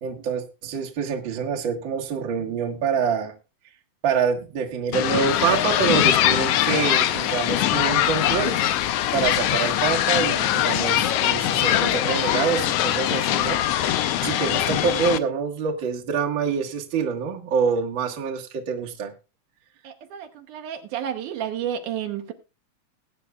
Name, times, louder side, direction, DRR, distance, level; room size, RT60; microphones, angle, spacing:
voice 1, 0.0-3.3 4.0-8.6 9.1-13.6 14.2-19.1, right 6 dB, 45° right, 1 dB, 2.0 m, -26 dB
sound 1, 4.9-15.2, left 12 dB, 85° left, 1.4 m, -22 dB
voice 2, 19.8-22.3, right 9 dB, 75° right, 4 dB, 2.4 m, -31 dB
20.5 x 9.2 x 2.4 m, 0.29 s
omnidirectional pair, 3.7 m